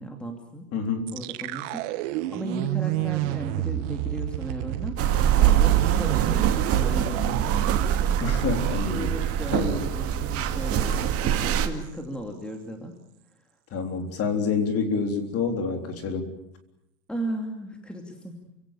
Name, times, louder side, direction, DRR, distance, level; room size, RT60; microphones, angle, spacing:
voice 1, 0.0-0.7 1.1-5.0 5.4-8.4 8.9-12.9 17.1-18.4, right 1 dB, ahead, 3 dB, 2.6 m, -36 dB
voice 2, 0.7-1.1 8.2-9.1 9.5-9.8 13.7-16.3, left 4 dB, 30° left, 6 dB, 3.7 m, -27 dB
sound 1, 1.1-10.1 10.4-10.6 10.9-11.3, right 16 dB, 45° right, 1.3 m, -31 dB
sound 2, 5.0-11.7, right 10 dB, 30° right, 2.2 m, -23 dB
29.0 x 17.5 x 8.8 m, 0.83 s
supercardioid pair, 150°, 49 cm